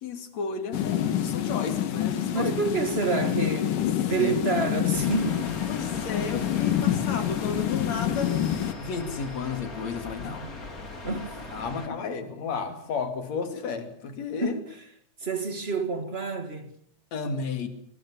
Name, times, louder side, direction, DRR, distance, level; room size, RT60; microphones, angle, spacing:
voice 1, 0.0-2.5 3.8-3.9 4.2-4.7 5.7-8.3 8.8-10.5 11.5-14.6 17.1-17.7, left 5 dB, 55° left, 3.7 m, -33 dB
sound 1, 0.7-8.7, left 11 dB, 80° left, 3.3 m, -27 dB
voice 2, 2.3-3.8 4.1-5.5 10.2-10.7 11.0-11.4 11.9-12.0 14.4-14.8 15.2-16.7, right 3 dB, 25° right, 1.7 m, -28 dB
sound 2, 4.9-11.9, left 2 dB, 25° left, 3.5 m, -40 dB
24.5 x 23.5 x 7.2 m
omnidirectional pair, 3.7 m